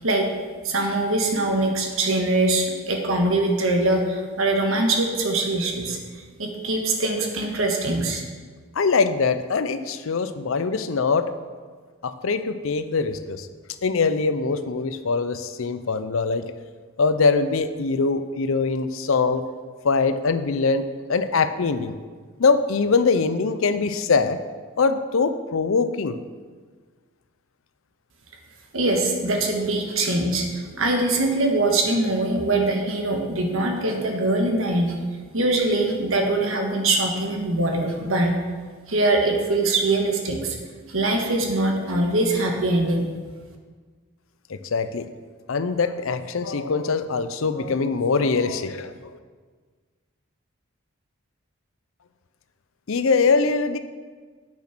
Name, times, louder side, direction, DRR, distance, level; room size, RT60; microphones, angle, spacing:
voice 1, 0.6-6.0 6.4-8.2 28.7-34.9 35.3-38.3 38.9-40.6 40.9-43.0, right 2 dB, 75° right, 2 dB, 1.5 m, -22 dB
voice 2, 8.8-11.3 12.0-13.5 13.8-16.5 17.0-19.4 19.8-20.8 21.1-21.9 22.4-24.4 24.8-26.2 44.7-45.1 45.5-49.0 52.9-53.8, left 4 dB, 75° left, 11 dB, 0.6 m, -22 dB
8.5 x 6.2 x 6.0 m, 1.5 s
head